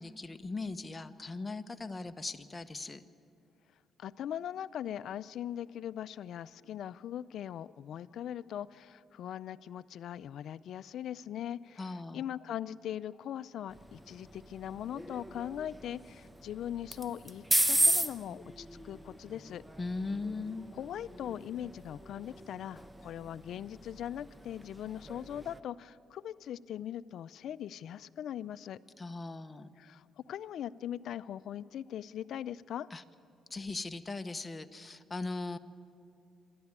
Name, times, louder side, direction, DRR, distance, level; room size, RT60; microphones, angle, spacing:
voice 1, 0.0-3.0 11.8-12.2 19.8-20.6 29.0-29.7 32.9-33.0 33.5-35.6, left 3 dB, 20° left, 9 dB, 1.0 m, -39 dB
voice 2, 4.0-19.6 20.7-28.8 29.8-32.9, left 10 dB, 70° left, 16 dB, 0.4 m, -40 dB
sound 1, 13.7-25.6, right 1 dB, 10° right, 0.9 m, -36 dB
27.5 x 12.0 x 9.7 m, 2.6 s
cardioid pair, 90°, 0 cm